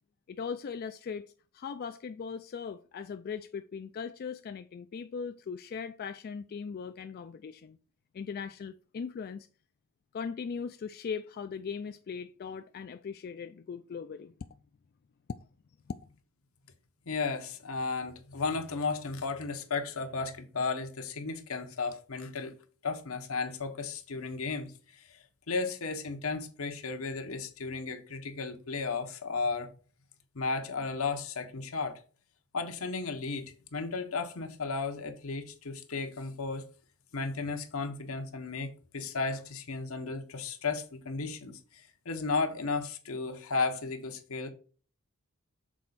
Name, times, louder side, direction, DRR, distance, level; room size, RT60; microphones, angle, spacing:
voice 1, 0.3-1.3 1.5-7.8 8.1-9.5 10.1-14.3 15.9-16.0, left 6 dB, 45° left, 0.3 m, -39 dB
voice 2, 17.1-22.6 22.8-25.2 25.5-29.7 30.3-32.0 32.5-36.6 37.1-44.5, left 4 dB, 85° left, 1.1 m, -34 dB
6.2 x 4.3 x 4.0 m
head